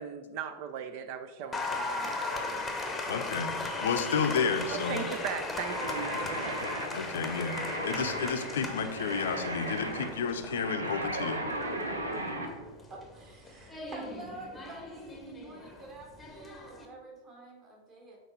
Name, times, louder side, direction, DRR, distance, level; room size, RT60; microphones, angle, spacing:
voice 1, 0.0-2.7 3.7-3.9 4.7-6.9, right 7 dB, 45° right, 9 dB, 0.5 m, -39 dB
Applause, 1.5-16.9, left 3 dB, 10° left, 1.0 m, -38 dB
voice 2, 3.0-3.5 3.8-5.1 6.9-11.4, left 6 dB, 60° left, 7 dB, 0.6 m, -31 dB
sound 1, 5.6-12.5, right 1 dB, 80° right, 0.9 m, -36 dB
voice 3, 12.9-18.2, right 1 dB, 30° right, -1 dB, 2.0 m, -48 dB
6.5 x 4.6 x 3.9 m, 1.1 s
figure-of-eight pair, 90°, 0 cm